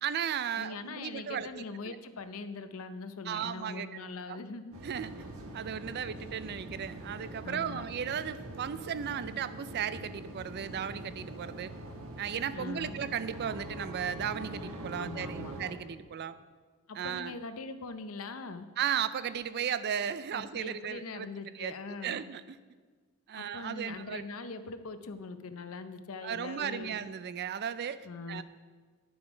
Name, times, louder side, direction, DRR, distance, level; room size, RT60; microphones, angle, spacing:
voice 1, 0.0-2.0 3.3-4.4 4.8-5.1 5.5-11.7 12.2-16.4 16.9-17.3 18.8-21.3 21.5-22.6 23.3-24.2 26.2-28.0 28.3-28.4, right 8 dB, 50° right, 14 dB, 0.4 m, -35 dB
voice 2, 0.6-4.7 7.4-7.8 12.5-13.0 15.0-15.5 16.9-18.7 20.3-22.2 23.4-27.0 28.0-28.4, left 3 dB, 70° left, 10 dB, 0.7 m, -42 dB
sound 1, 4.7-15.7, right 1 dB, 70° right, 1.2 m, -43 dB
10.5 x 7.1 x 5.0 m, 1.5 s
head